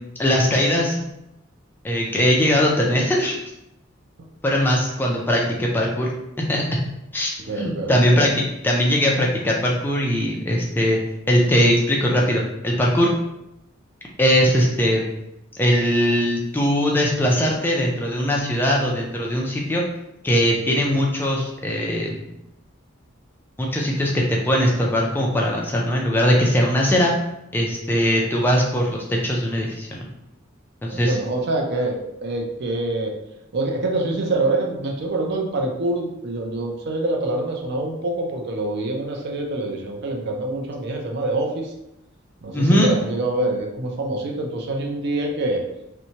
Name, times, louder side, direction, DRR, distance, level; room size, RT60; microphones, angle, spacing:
voice 1, 0.2-1.0 1.8-3.4 4.4-6.1 6.4-6.6 7.1-7.3 7.6-11.0 11.3-13.1 14.2-15.0 15.6-19.8 20.2-22.3 23.6-27.1 27.5-30.1 30.8-31.2 42.5-42.9, equal, 10° left, -2 dB, 0.3 m, -20 dB
voice 2, 7.5-8.2 14.4-14.5 20.9-21.0 30.9-33.1 33.5-41.7 42.4-45.6, right 2 dB, 55° right, 1 dB, 0.4 m, -25 dB
2.8 x 2.1 x 2.7 m, 0.86 s
head